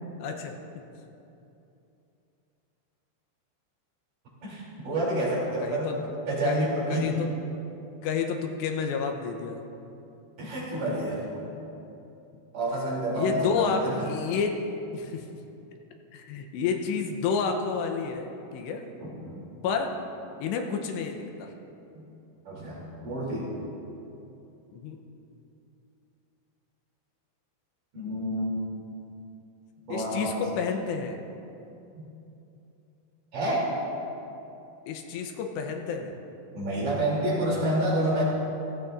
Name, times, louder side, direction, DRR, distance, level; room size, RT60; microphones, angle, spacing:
voice 1, 0.2-0.8 4.9-5.0 5.6-6.0 6.4-7.3 8.0-9.6 13.1-14.6 14.9-15.3 16.1-18.9 19.6-20.0 20.4-21.5 24.7-25.0 29.9-31.2 34.9-36.2, left 5 dB, 85° left, 3 dB, 3.0 m, -30 dB
voice 2, 4.4-7.2 10.4-11.5 12.5-14.0 19.0-19.4 21.9-22.0 22.5-23.5 27.9-28.6 29.9-30.3 31.9-32.0 33.3-33.7 36.5-38.2, right 1 dB, 50° right, -6 dB, 4.6 m, -29 dB
16.5 x 15.5 x 2.6 m, 2.8 s
omnidirectional pair, 5.0 m